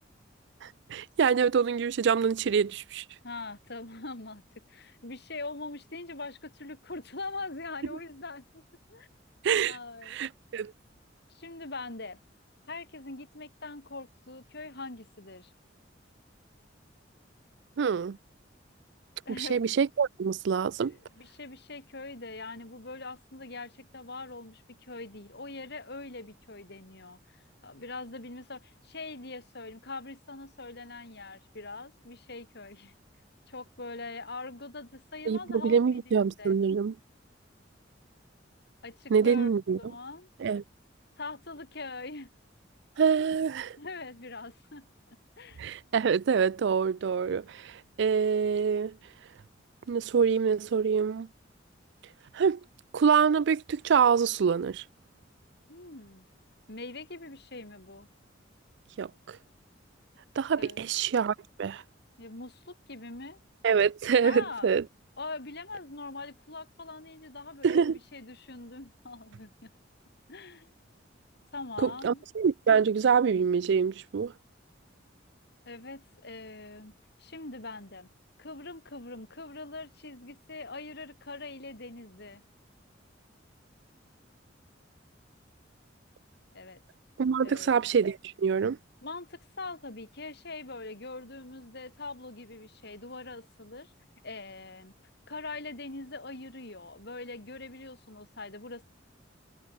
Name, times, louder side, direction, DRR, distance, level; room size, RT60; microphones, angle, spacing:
voice 1, 0.6-3.0 9.4-9.8 10.1-10.7 17.8-18.2 19.4-20.9 35.3-36.9 39.1-39.8 40.4-40.6 43.0-43.8 45.6-48.9 49.9-51.3 52.3-52.6 52.9-54.8 59.0-59.4 60.4-61.8 63.6-64.8 67.6-68.0 71.8-74.3 87.2-88.8, right 6 dB, 65° right, 0.4 m, -26 dB
voice 2, 3.2-8.6 8.9-9.1 9.7-10.2 11.3-12.2 12.7-15.5 19.2-19.7 20.8-27.4 27.6-32.9 33.5-36.5 38.8-39.5 39.8-40.3 41.2-42.3 43.8-44.9 45.4-45.6 55.7-56.3 56.7-58.1 60.6-60.9 62.2-63.4 64.2-64.7 65.2-69.7 70.3-70.7 71.5-72.2 75.6-76.9 77.2-78.1 78.4-82.4 86.5-86.8 87.4-87.8 89.0-93.9 94.2-94.9 95.3-98.8, left 3 dB, 60° left, 4.9 m, -42 dB
head